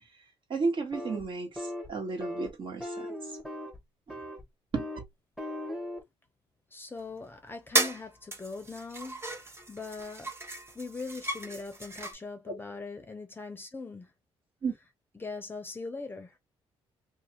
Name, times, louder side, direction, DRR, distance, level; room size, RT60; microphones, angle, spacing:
voice 1, 0.5-3.3 4.1-4.2 4.7-4.9 12.5-12.6 14.6-14.7, right 4 dB, 50° right, 1.4 m, -33 dB
sound 1, 0.9-1.2 1.6-1.9 2.2-2.5 2.8-3.8 4.1-4.4 4.7-5.0 5.4-6.0, left 1 dB, ahead, 1.0 m, -38 dB
voice 2, 6.7-9.2 9.7-10.3 10.7-14.1 15.1-16.4, left 3 dB, 20° left, 0.7 m, -41 dB
sound 2, 7.1-7.2 7.7-8.0 8.3-12.1, right 2 dB, 25° right, 1.0 m, -34 dB
2.6 x 2.4 x 2.8 m
cardioid pair, 90°, 11 cm